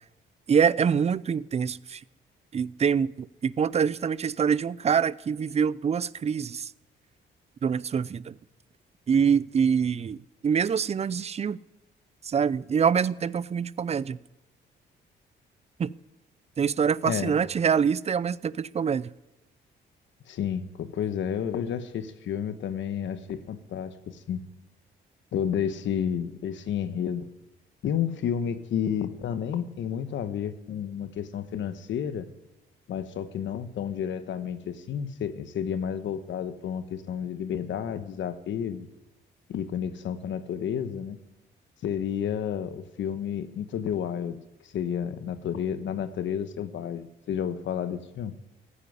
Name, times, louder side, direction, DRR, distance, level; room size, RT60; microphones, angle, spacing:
voice 1, 0.5-2.0 2.5-6.7 7.6-8.4 9.1-10.2 10.4-11.6 12.2-14.2 15.8-15.9 16.6-19.1, right 7 dB, 35° right, 0.5 m, -25 dB
voice 2, 17.0-17.4 20.3-24.4 25.3-27.3 27.8-32.3 32.9-38.9 39.5-41.2 41.8-44.4 44.6-48.3, left 8 dB, 75° left, 1.2 m, -31 dB
15.0 x 8.5 x 9.6 m
cardioid pair, 85°, 20 cm